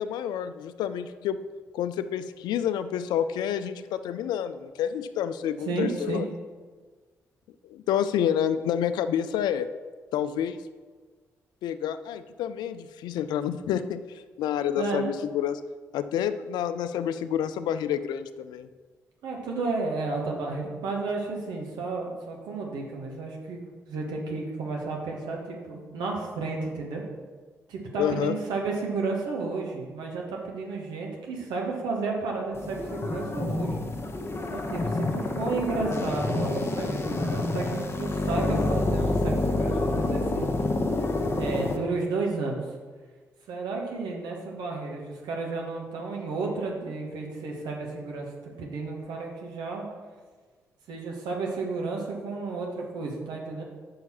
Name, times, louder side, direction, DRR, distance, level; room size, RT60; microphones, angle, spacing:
voice 1, 0.0-1.4 1.7-6.2 7.6-9.7 10.1-10.6 11.6-14.0 14.4-15.6 15.9-18.7 28.0-28.4, left 9 dB, 70° left, 12 dB, 0.4 m, -28 dB
voice 2, 5.6-6.2 14.8-15.1 19.2-23.6 23.9-27.0 27.7-33.8 34.5-40.5 41.4-42.7 43.5-49.9 50.9-53.6, right 3 dB, 70° right, 0 dB, 1.3 m, -32 dB
sound 1, 32.5-41.8, left 2 dB, 35° left, 0.9 m, -28 dB
5.5 x 4.6 x 5.8 m, 1.4 s
hypercardioid pair, 40°, 7 cm